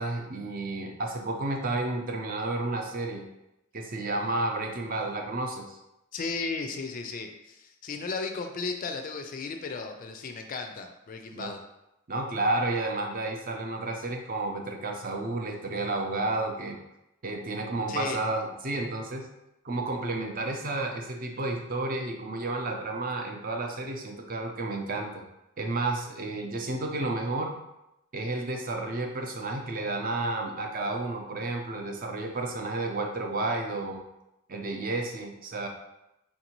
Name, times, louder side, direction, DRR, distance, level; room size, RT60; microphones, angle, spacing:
voice 1, 0.0-3.2 3.7-5.8 11.3-11.5 12.1-16.8 17.2-19.2 19.6-25.1 25.6-27.5 28.1-34.0 34.5-35.7, right 2 dB, 40° right, 2 dB, 0.5 m, -31 dB
voice 2, 6.1-11.6 17.9-18.2, left 4 dB, 40° left, 5 dB, 0.3 m, -35 dB
4.5 x 2.6 x 2.9 m, 0.88 s
head